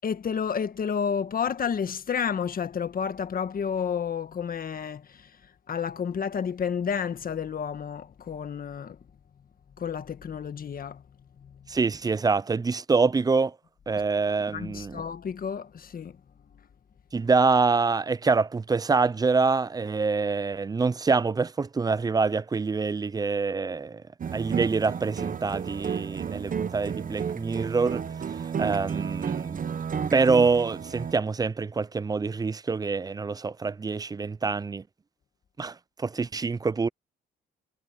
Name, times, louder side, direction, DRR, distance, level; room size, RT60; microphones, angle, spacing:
voice 1, 0.0-5.3 5.7-9.0 9.8-11.0 11.4-11.7 14.5-16.2, left 7 dB, 45° left, 1.5 m, -31 dB
voice 2, 11.7-13.5 13.9-15.0 17.1-24.0 24.3-28.0 28.6-29.6 30.1-34.8 35.6-36.9, right 4 dB, 20° right, 0.4 m, -25 dB
sound 1, 24.2-31.1, right 7 dB, 45° right, 1.2 m, -32 dB
cardioid pair, 90°, 20 cm